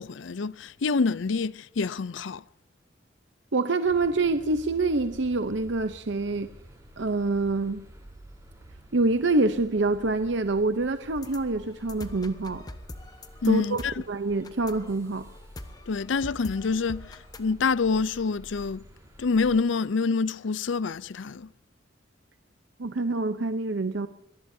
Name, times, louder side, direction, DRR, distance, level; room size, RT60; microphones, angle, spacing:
voice 1, 0.0-2.4 13.4-13.9 15.9-18.8 19.2-21.5, left 4 dB, 70° left, 0.5 m, -27 dB
voice 2, 3.5-6.5 7.0-7.8 8.9-12.6 13.4-13.8 14.1-15.3 22.8-24.1, right 3 dB, 65° right, 0.8 m, -26 dB
sound 1, 3.8-19.6, equal, 15° right, 6.4 m, -50 dB
sound 2, 11.1-17.5, left 1 dB, 20° left, 1.2 m, -44 dB
25.5 x 19.5 x 2.8 m
head